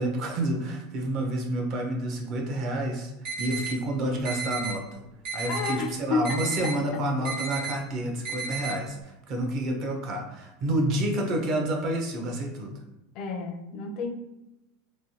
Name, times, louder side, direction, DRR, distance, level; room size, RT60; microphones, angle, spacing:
voice 1, 0.0-3.1 3.4-5.0 5.3-12.7, right 1 dB, 40° right, 2 dB, 0.6 m, -29 dB
sound 1, 3.2-3.7 4.2-4.7 5.2-5.7 6.2-6.7 7.2-7.7 8.2-8.7, right 5 dB, 60° right, 1.4 m, -33 dB
voice 2, 5.5-7.1 13.1-14.1, left 4 dB, 45° left, 4 dB, 0.4 m, -31 dB
3.1 x 2.1 x 2.7 m, 0.96 s
supercardioid pair, 150°, 0 cm